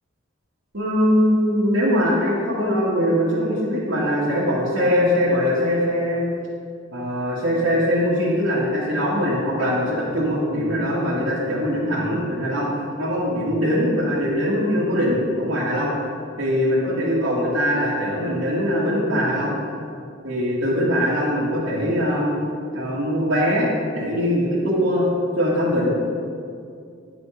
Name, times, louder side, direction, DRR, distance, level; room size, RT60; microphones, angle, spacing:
voice 1, 0.7-6.2 6.9-12.7 13.0-15.9 16.4-19.6 20.2-22.4 22.7-25.1 25.4-25.9, equal, 85° right, -9 dB, 2.1 m, -21 dB
11.0 x 5.4 x 5.1 m, 2.3 s
head